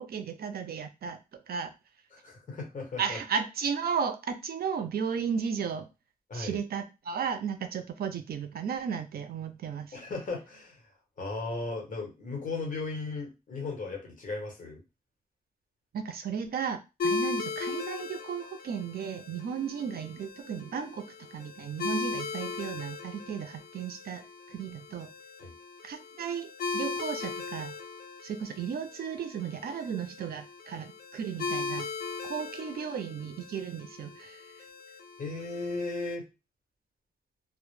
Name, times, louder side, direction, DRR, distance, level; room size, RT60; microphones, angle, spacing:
voice 1, 0.0-1.7 3.0-5.9 6.3-10.0 15.9-25.1 25.8-27.7 28.2-31.9 32.2-34.4, right 7 dB, 85° right, 8 dB, 0.4 m, -34 dB
voice 2, 2.1-3.2 6.3-6.6 9.9-10.8 11.2-14.8 25.4-25.5 35.2-36.3, left 3 dB, 60° left, -1 dB, 0.9 m, -36 dB
sound 1, 17.0-36.1, left 4 dB, 85° left, 0.4 m, -38 dB
2.0 x 2.0 x 3.0 m, 0.26 s
wide cardioid pair, 150°, 15 cm